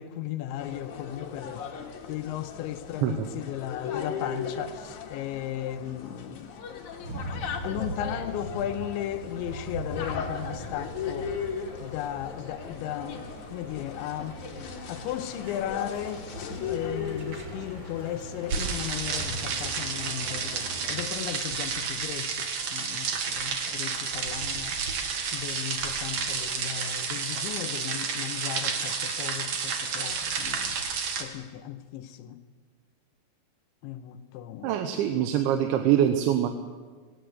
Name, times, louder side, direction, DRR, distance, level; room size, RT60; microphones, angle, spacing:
voice 1, 0.0-1.7 2.1-6.9 7.3-11.3 11.8-14.4 14.9-16.3 16.7-24.8 25.3-30.8 31.2-32.4 33.8-34.7, left 11 dB, 85° left, 3.2 m, -36 dB
sound 1, 0.6-19.9, left 6 dB, 55° left, 2.5 m, -38 dB
sound 2, 7.0-21.0, right 1 dB, 35° right, 2.3 m, -41 dB
sound 3, 18.5-31.2, right 5 dB, 55° right, 2.1 m, -31 dB
voice 2, 34.6-36.5, right 10 dB, 80° right, 3.2 m, -24 dB
19.0 x 18.5 x 7.9 m
omnidirectional pair, 5.3 m